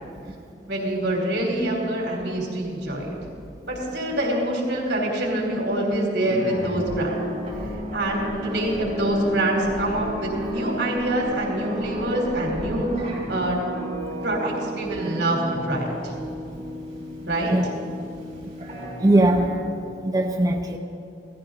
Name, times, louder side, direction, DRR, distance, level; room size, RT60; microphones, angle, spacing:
voice 1, 0.7-3.2 3.6-7.1 7.9-12.9 13.3-13.6 14.2-16.1 17.3-17.5, right 1 dB, 75° right, -1 dB, 3.5 m, -25 dB
sound 1, 6.2-19.6, equal, 35° right, 3.8 m, -33 dB
voice 2, 19.0-19.8 20.0-20.8, right 1 dB, 20° right, 2 dB, 0.6 m, -21 dB
17.0 x 14.0 x 3.9 m, 2.5 s
head